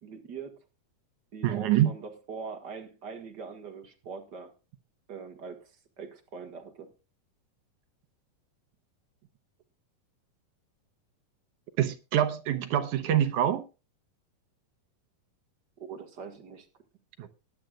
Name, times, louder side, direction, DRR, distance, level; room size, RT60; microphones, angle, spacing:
voice 1, 0.0-0.5 1.3-4.5 5.1-5.7 6.0-6.9 15.8-16.7, right 5 dB, 40° right, 1.6 m, -42 dB
voice 2, 1.4-1.9 11.8-13.6 17.2-17.3, right 11 dB, 70° right, 2.2 m, -25 dB
20.0 x 10.5 x 2.4 m
omnidirectional pair, 3.9 m